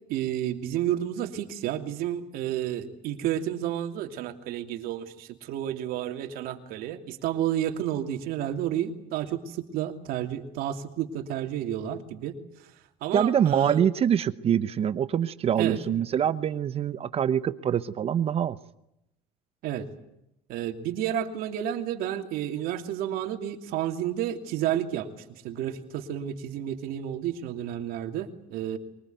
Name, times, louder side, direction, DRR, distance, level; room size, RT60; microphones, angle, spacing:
voice 1, 0.1-12.3 13.0-13.8 15.6-15.8 19.6-19.9 20.5-25.1 25.4-28.8, right 11 dB, 65° right, 6 dB, 2.8 m, -31 dB
voice 2, 13.1-18.6, right 9 dB, 40° right, 14 dB, 1.0 m, -25 dB
23.0 x 20.0 x 9.3 m, 0.83 s
cardioid pair, 120°, 16 cm